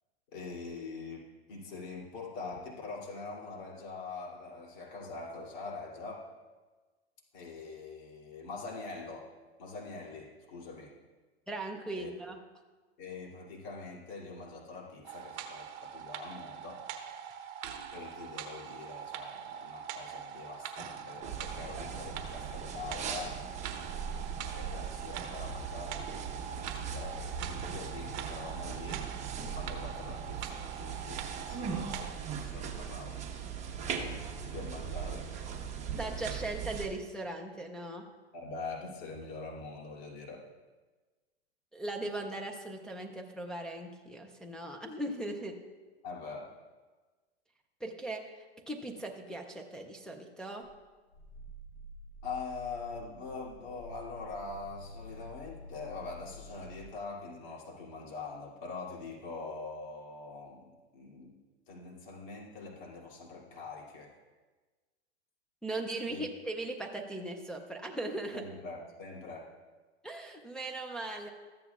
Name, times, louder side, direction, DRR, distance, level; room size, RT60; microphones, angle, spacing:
voice 1, 0.3-6.3 7.3-9.3 9.6-10.9 11.9-12.1 13.0-16.8 17.9-23.4 24.5-29.0 29.5-33.2 33.9-35.5 38.3-40.4 46.0-46.5 52.2-60.6 60.9-61.4 61.7-64.2 66.1-66.2 68.3-69.5, left 4 dB, 45° left, -4 dB, 2.7 m, -44 dB
voice 2, 11.5-12.4 36.0-38.1 41.7-45.6 47.8-50.6 65.6-68.4 70.0-71.3, right 2 dB, ahead, 0 dB, 0.4 m, -39 dB
sound 1, 15.0-32.1, right 8 dB, 40° right, 1.0 m, -43 dB
sound 2, 21.2-36.9, right 7 dB, 20° right, 1.1 m, -39 dB
Growling, 50.6-57.0, left 2 dB, 70° left, 1.6 m, -49 dB
14.0 x 9.1 x 2.4 m, 1.3 s
hypercardioid pair, 135°, 33 cm